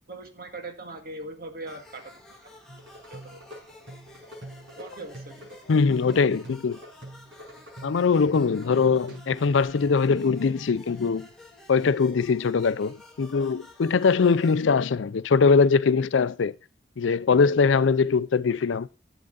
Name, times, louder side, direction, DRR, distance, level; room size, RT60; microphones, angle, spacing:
voice 1, 0.1-2.6 3.1-3.4 4.8-5.4, right 2 dB, 50° right, 1.8 m, -40 dB
sound 1, 1.7-14.6, left 2 dB, ahead, 2.4 m, -51 dB
sound 2, 2.7-9.6, right 1 dB, 80° right, 5.7 m, -45 dB
voice 2, 5.7-6.8 7.8-11.3 11.7-16.6 17.0-18.9, left 5 dB, 75° left, 0.4 m, -22 dB
11.0 x 8.9 x 3.8 m
head